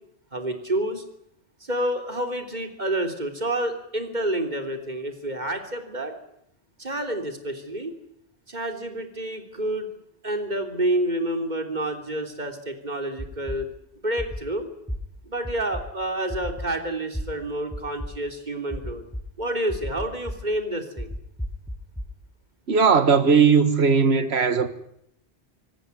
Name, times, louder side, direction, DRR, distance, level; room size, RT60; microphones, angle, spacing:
voice 1, 0.3-1.0 1.6-6.1 6.8-8.0 8.5-9.9 10.2-13.7 14.0-14.7 15.2-19.0 19.4-21.1, right 1 dB, 45° right, 3.4 m, -29 dB
sound 1, 13.2-13.6 14.2-14.4 14.9-15.0 15.4-15.8 16.3-16.7 17.1-17.2 17.7-18.1 18.7-19.2 19.7-20.4 21.0-22.1, equal, 5° left, 2.8 m, -32 dB
voice 2, 22.7-24.7, right 5 dB, 75° right, 1.7 m, -18 dB
26.0 x 18.0 x 9.7 m
omnidirectional pair, 1.1 m